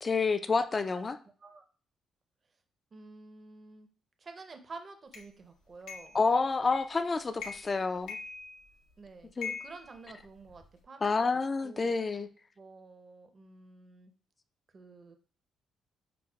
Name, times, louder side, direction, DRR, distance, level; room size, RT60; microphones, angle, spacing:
voice 1, 0.0-1.2 6.1-8.2 9.4-9.5 11.0-12.3, left 4 dB, 30° left, 0.3 m, -29 dB
voice 2, 2.9-3.9 4.2-6.2 9.0-11.3 11.6-12.0 12.6-14.1 14.7-15.2, right 3 dB, 40° right, 0.6 m, -50 dB
sound 1, 5.1-5.3 5.9-6.2 6.7-7.0 7.4-7.8 8.1-8.9 9.4-10.7, left 5 dB, 85° left, 0.7 m, -42 dB
5.8 x 2.0 x 2.3 m
cardioid pair, 90°, 0 cm